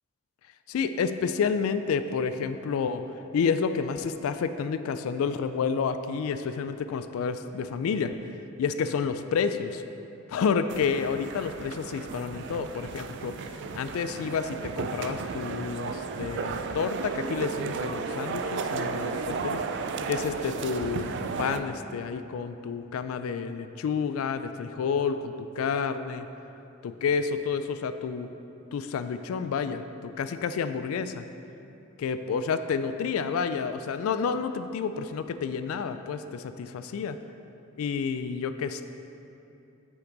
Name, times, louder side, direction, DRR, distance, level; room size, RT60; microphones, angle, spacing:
voice 1, 0.7-3.0 3.3-8.2 8.6-9.8 10.3-13.4 13.7-19.6 20.1-21.1 21.4-26.3 26.8-28.3 28.7-31.3 32.0-37.2 37.8-38.8, left 6 dB, 85° left, 11 dB, 0.3 m, -29 dB
sound 1, 10.7-21.6, right 4 dB, 60° right, 0.4 m, -34 dB
7.9 x 5.8 x 3.9 m, 2.8 s
head